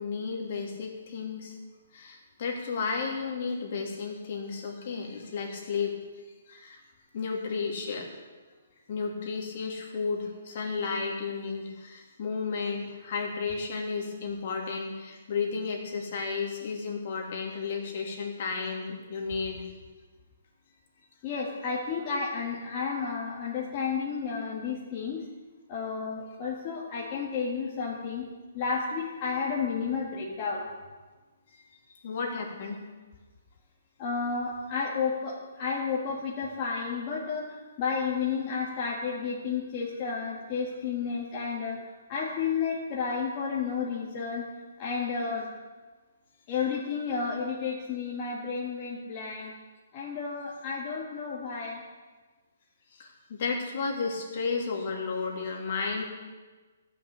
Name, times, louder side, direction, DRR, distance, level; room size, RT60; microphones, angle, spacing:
voice 1, 0.0-1.6 1.9-5.9 6.5-6.8 7.1-8.1 8.9-19.6 31.5-31.6 31.9-32.8 52.9-53.1 53.4-56.0, left 5 dB, 50° left, 0 dB, 2.7 m, -33 dB
voice 2, 21.2-25.2 25.7-28.3 28.5-30.7 34.0-41.8 42.1-44.5 44.8-45.4 46.5-49.5 49.9-51.8, left 5 dB, 30° left, -5 dB, 1.9 m, -32 dB
13.5 x 6.2 x 8.7 m, 1.3 s
hypercardioid pair, 160°, 0 cm